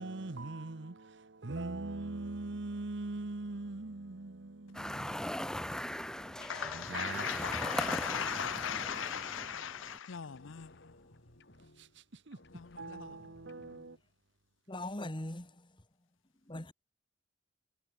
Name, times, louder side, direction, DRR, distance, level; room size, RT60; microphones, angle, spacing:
voice 1, 0.0-5.8 6.6-7.3 11.8-11.9 12.3-12.4 12.8-14.0, right 2 dB, 60° right, 1.0 m, -42 dB
sound 1, 4.7-10.0, equal, 5° left, 1.4 m, -39 dB
sound 2, 6.0-7.9 8.1-10.0 10.2-12.1 12.3-14.0, left 1 dB, 55° left, 4.4 m, -60 dB
voice 2, 6.4-10.7 12.5-13.1, left 8 dB, 70° left, 0.6 m, -38 dB
voice 3, 14.7-15.7 16.5-16.7, left 1 dB, 25° left, 1.7 m, -40 dB
head